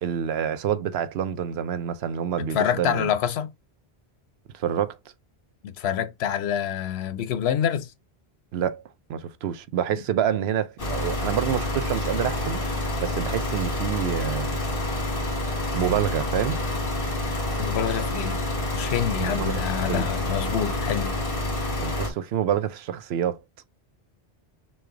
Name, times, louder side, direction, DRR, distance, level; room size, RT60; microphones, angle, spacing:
voice 1, 0.0-3.1 4.5-5.0 8.5-8.8 9.1-12.6 13.0-14.6 15.7-16.6 19.2-19.6 19.9-20.1 21.8-23.4, right 9 dB, 80° right, 0.8 m, -27 dB
voice 2, 2.5-3.5 5.6-7.9 17.6-18.4 18.7-21.2, left 9 dB, 85° left, 0.9 m, -26 dB
sound 1, 10.8-22.1, left 1 dB, 60° left, 1.8 m, -28 dB
6.2 x 2.3 x 3.7 m
omnidirectional pair, 1.1 m